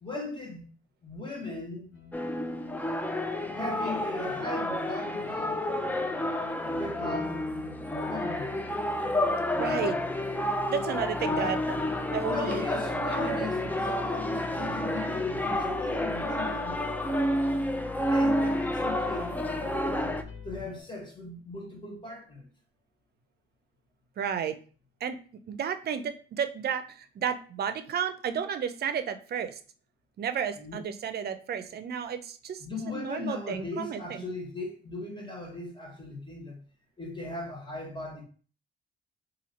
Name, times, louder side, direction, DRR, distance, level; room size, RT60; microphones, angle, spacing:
voice 1, 0.0-0.7 1.0-1.9 3.5-5.6 6.7-8.7 11.3-11.6 12.3-16.8 18.1-22.5 30.6-30.9 32.6-36.6 37.0-38.2, left 2 dB, 25° left, 1.6 m, -38 dB
sound 1, 1.9-20.8, left 3 dB, 60° left, 1.2 m, -44 dB
sound 2, 2.1-20.2, left 1 dB, 10° left, 0.4 m, -30 dB
voice 2, 9.6-10.0 10.7-11.6 12.1-12.6 13.2-13.4 24.2-24.6 25.0-25.2 25.5-29.6 30.2-34.2, right 7 dB, 55° right, 0.5 m, -32 dB
2.8 x 2.8 x 4.1 m
cardioid pair, 90°, 20 cm